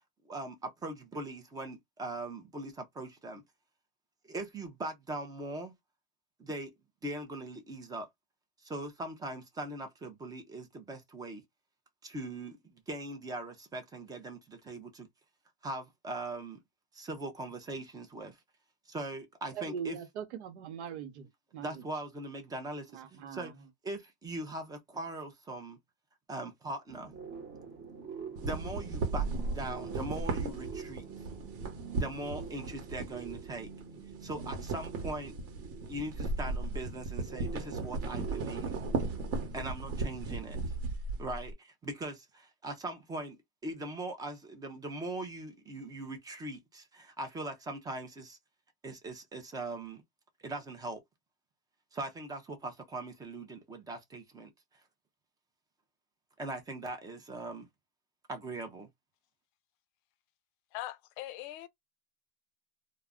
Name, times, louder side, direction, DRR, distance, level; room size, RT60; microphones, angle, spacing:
voice 1, 0.2-3.4 4.3-5.7 6.4-6.7 7.0-8.1 8.6-11.4 12.0-15.1 15.6-16.6 16.9-18.4 18.9-20.0 21.6-23.5 23.8-25.8 26.3-27.1 28.4-29.3 29.5-31.0 32.0-33.7 34.2-35.3 35.9-38.8 39.5-40.6 41.2-43.4 43.6-48.4 48.8-50.0 50.4-51.0 51.9-54.5 56.4-57.7 58.3-58.9, right 2 dB, 10° right, 0.4 m, -40 dB
voice 2, 19.5-21.3 21.5-21.7 22.9-23.5, right 8 dB, 85° right, 0.9 m, -40 dB
sound 1, 26.9-39.6, right 5 dB, 30° right, 0.9 m, -46 dB
sound 2, 28.4-33.8 34.1-41.5, right 3 dB, 55° right, 1.0 m, -36 dB
voice 3, 60.7-61.7, left 15 dB, 50° left, 0.5 m, -41 dB
2.3 x 2.0 x 3.5 m
supercardioid pair, 150°, 34 cm